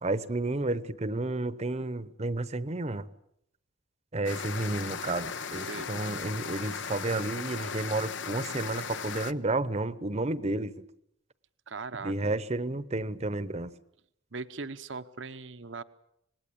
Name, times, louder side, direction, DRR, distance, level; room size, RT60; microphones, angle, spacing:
voice 1, 0.0-3.0 4.1-10.7 12.0-13.7, right 2 dB, 35° right, 16 dB, 0.9 m, -31 dB
sound 1, 4.3-9.3, left 6 dB, 70° left, 0.9 m, -37 dB
voice 2, 5.5-5.9 11.7-12.4 14.3-15.8, right 4 dB, 75° right, 11 dB, 1.0 m, -39 dB
26.0 x 20.0 x 8.6 m, 0.75 s
head